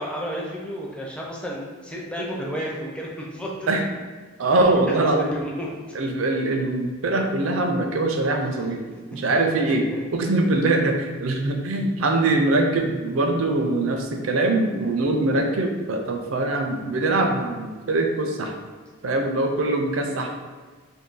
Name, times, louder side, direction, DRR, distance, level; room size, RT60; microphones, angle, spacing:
voice 1, 0.0-3.7 5.0-5.7 8.7-8.8 10.1-10.2, equal, 5° left, -3 dB, 0.5 m, -32 dB
voice 2, 4.4-5.3 5.9-9.8 10.1-18.5 19.0-20.3, right 2 dB, 80° right, 3 dB, 0.5 m, -23 dB
2.6 x 2.6 x 3.7 m, 1.4 s
head